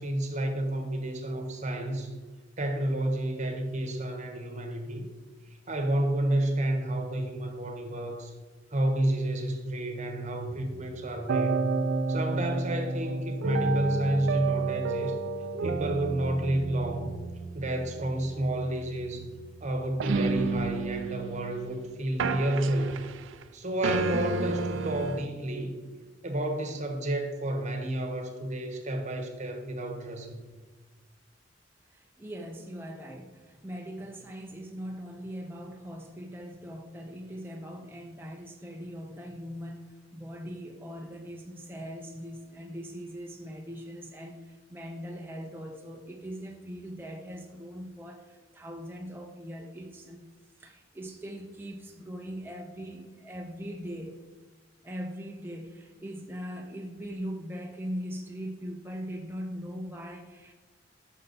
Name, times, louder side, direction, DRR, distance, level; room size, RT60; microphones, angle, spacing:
voice 1, 0.0-2.1 2.6-5.1 5.7-8.3 8.7-11.7 12.1-15.2 15.6-17.2 17.5-19.3 19.6-23.0 23.5-25.8 26.2-30.4, right 1 dB, 40° right, 4 dB, 1.0 m, -30 dB
sound 1, 10.5-21.8 22.2-23.5 23.8-25.2, right 3 dB, 75° right, 0.4 m, -31 dB
voice 2, 31.9-50.3 50.6-54.2 54.8-60.5, equal, 10° right, 1 dB, 0.5 m, -40 dB
6.5 x 5.5 x 4.0 m, 1.3 s
head